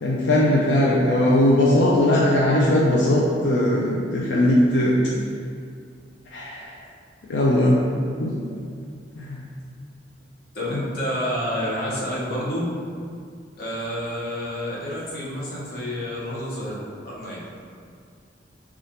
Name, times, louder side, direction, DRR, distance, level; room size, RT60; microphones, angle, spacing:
voice 1, 0.0-5.0 6.3-6.7 7.3-7.8 8.2-8.3 9.1-9.4, left 1 dB, 85° left, -5 dB, 0.5 m, -19 dB
voice 2, 10.5-12.7 13.5-17.4, equal, 55° left, -6 dB, 1.0 m, -29 dB
6.3 x 2.4 x 2.9 m, 2.3 s
head